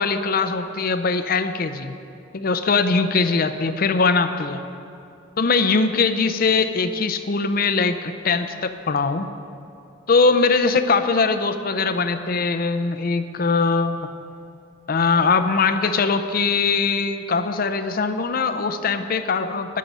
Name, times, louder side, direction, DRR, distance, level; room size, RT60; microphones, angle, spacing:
voice 1, 0.0-2.0 2.3-4.6 5.4-9.3 10.1-14.1 14.9-19.8, left 4 dB, 50° left, 10 dB, 0.5 m, -21 dB
19.5 x 7.4 x 5.4 m, 2.6 s
head